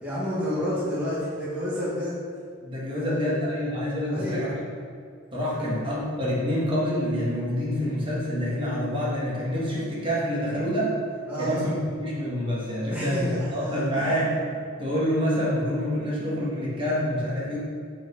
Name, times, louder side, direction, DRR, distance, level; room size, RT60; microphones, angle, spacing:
voice 1, 0.0-2.2 3.0-3.3 4.1-4.4 5.5-5.7 11.3-11.6 12.9-14.2, equal, 5° right, -10 dB, 1.2 m, -30 dB
voice 2, 2.6-4.5 5.3-10.9 11.4-14.3 14.8-17.6, equal, 25° right, -7 dB, 1.3 m, -27 dB
4.6 x 4.5 x 4.9 m, 2.3 s
head